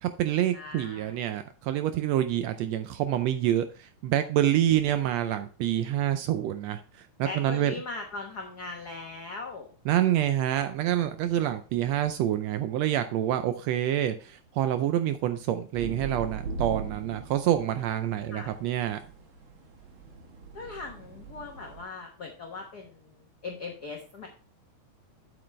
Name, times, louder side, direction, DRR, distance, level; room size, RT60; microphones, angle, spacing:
voice 1, 0.0-6.8 7.2-7.7 9.8-19.0, right 11 dB, 80° right, 10 dB, 1.6 m, -27 dB
voice 2, 0.5-1.1 7.2-9.7 18.3-18.5 20.5-23.0 23.4-24.3, left 3 dB, 80° left, 2 dB, 0.8 m, -39 dB
sound 1, 15.7-21.8, right 5 dB, 55° right, 1.6 m, -40 dB
7.9 x 7.8 x 3.2 m, 0.36 s
omnidirectional pair, 3.4 m